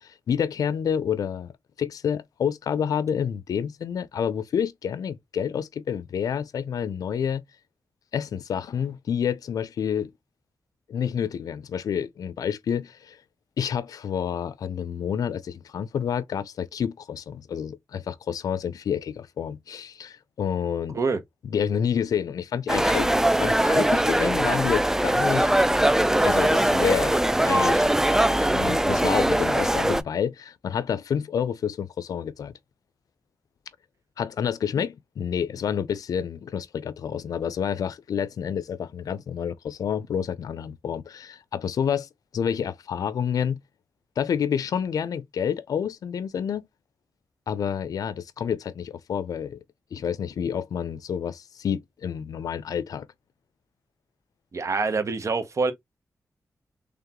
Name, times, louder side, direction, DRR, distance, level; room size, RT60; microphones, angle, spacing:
voice 1, 0.0-1.5 1.8-7.4 8.1-10.1 10.9-13.2 13.6-21.0 21.4-25.5 26.2-27.9 28.3-32.5 34.2-42.1 42.3-43.6 44.2-46.6 47.5-49.6 49.9-53.1, left 8 dB, 90° left, 0.4 m, -29 dB
sound 1, 22.7-30.0, right 1 dB, 10° right, 0.4 m, -21 dB
voice 2, 54.5-55.7, right 4 dB, 55° right, 1.0 m, -25 dB
3.7 x 3.4 x 2.9 m
cardioid pair, 65°, 6 cm